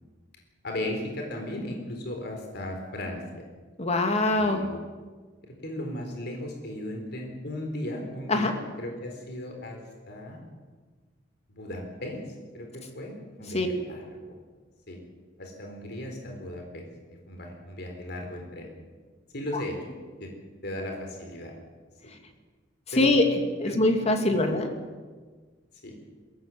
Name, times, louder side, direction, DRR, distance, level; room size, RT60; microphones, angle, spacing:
voice 1, 0.6-3.4 4.4-4.8 5.4-9.8 10.1-10.4 11.5-12.2 12.5-13.1 13.4-14.4 14.9-15.0 15.4-16.8 17.3-18.7 19.3-19.8 20.2-20.3 20.6-21.5 22.9-23.3 23.6-23.8 24.3-24.5 25.8-25.9, left 1 dB, 60° left, 2 dB, 4.1 m, -36 dB
voice 2, 3.8-4.6 8.3-8.5 13.5-13.7 23.0-24.7, left 2 dB, 35° left, 5 dB, 2.6 m, -23 dB
22.5 x 17.5 x 7.8 m, 1.4 s
head